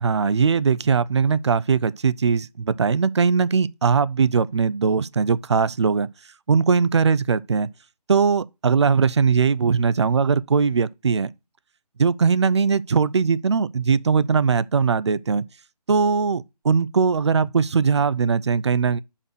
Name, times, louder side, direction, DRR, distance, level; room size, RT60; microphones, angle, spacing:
voice 1, 0.0-6.1 6.5-7.7 8.1-11.3 12.0-15.5 15.9-19.0, right 5 dB, 45° right, 0.4 m, -20 dB
5.4 x 4.5 x 6.3 m
figure-of-eight pair, 155°, 21 cm